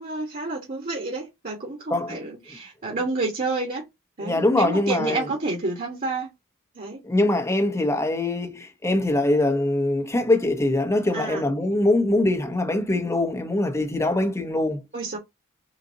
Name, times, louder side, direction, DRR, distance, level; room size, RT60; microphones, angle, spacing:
voice 1, 0.0-3.8 4.2-6.3 6.7-7.0 11.1-11.4 14.9-15.2, right 3 dB, 40° right, 1.3 m, -29 dB
voice 2, 1.9-2.2 2.9-3.0 4.2-5.3 7.0-14.8, left 2 dB, 15° left, 0.8 m, -23 dB
4.1 x 3.9 x 2.7 m
head